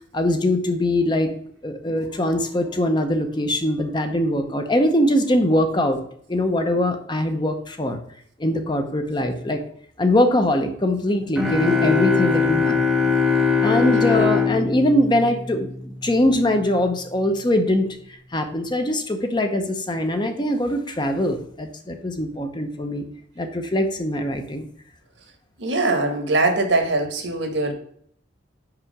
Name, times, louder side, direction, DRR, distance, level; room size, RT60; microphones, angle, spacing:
voice 1, 0.1-1.3 1.6-6.0 6.3-8.0 8.4-9.6 10.0-12.8 13.6-17.9 18.3-23.1 23.4-24.7, left 1 dB, 25° left, 6 dB, 0.7 m, -22 dB
sound 1, 11.4-16.0, left 5 dB, ahead, 0.9 m, -21 dB
voice 2, 13.9-14.3 25.6-27.7, right 2 dB, 75° right, 5 dB, 1.4 m, -22 dB
5.6 x 4.9 x 4.9 m, 0.64 s
head